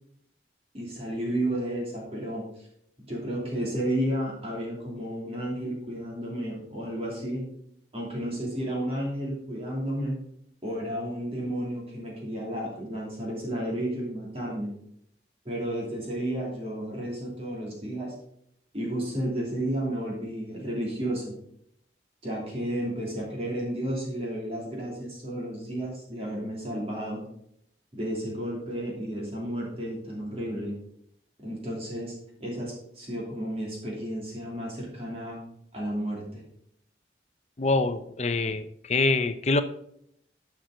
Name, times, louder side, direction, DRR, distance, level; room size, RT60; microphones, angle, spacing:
voice 1, 0.7-2.7 3.1-7.4 7.9-10.2 10.6-14.7 15.4-18.1 18.7-21.3 22.2-27.3 27.9-30.7 31.4-32.1 32.4-35.4 35.7-36.4, right 1 dB, 35° right, -3 dB, 2.9 m, -32 dB
voice 2, 37.6-39.6, left 3 dB, 40° left, 10 dB, 0.7 m, -25 dB
11.5 x 6.0 x 3.9 m, 0.72 s
head